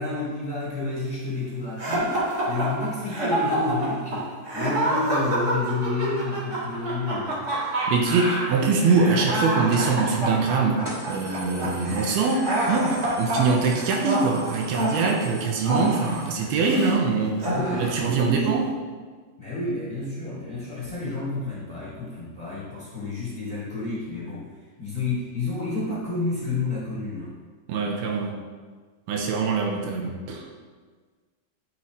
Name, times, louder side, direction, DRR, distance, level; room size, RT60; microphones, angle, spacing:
voice 1, 0.0-2.2 2.5-7.4 17.3-18.5 19.4-24.5 24.8-27.4, left 3 dB, 20° left, -8 dB, 2.1 m, -30 dB
sound 1, 1.8-17.0 17.4-18.1, right 1 dB, 45° right, 1.3 m, -27 dB
voice 2, 7.9-17.4 17.8-18.7 27.7-28.4 29.1-30.5, right 4 dB, 80° right, 1 dB, 2.8 m, -23 dB
sound 2, 9.7-10.0 10.4-10.5 10.8-16.3, equal, 10° right, 1.0 m, -41 dB
9.4 x 6.9 x 3.2 m, 1.5 s
omnidirectional pair, 4.5 m